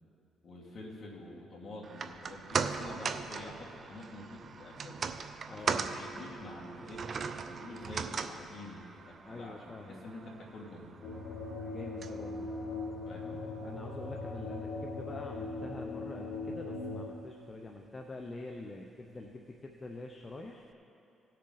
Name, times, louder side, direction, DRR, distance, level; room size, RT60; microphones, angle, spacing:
voice 1, 0.4-5.0 5.5-7.0 7.4-10.9 13.0-13.4, left 2 dB, 50° left, -3 dB, 2.4 m, -47 dB
sound 1, 1.8-14.2 14.5-14.6, right 5 dB, 50° right, 0.5 m, -39 dB
voice 2, 5.5-5.9 9.3-10.0 11.6-12.5 13.6-20.6, left 2 dB, 30° left, 1 dB, 0.7 m, -45 dB
sound 2, 11.0-17.1, left 3 dB, 75° left, 1.4 m, -39 dB
18.0 x 6.6 x 4.0 m, 2.7 s
cardioid pair, 90°, 0 cm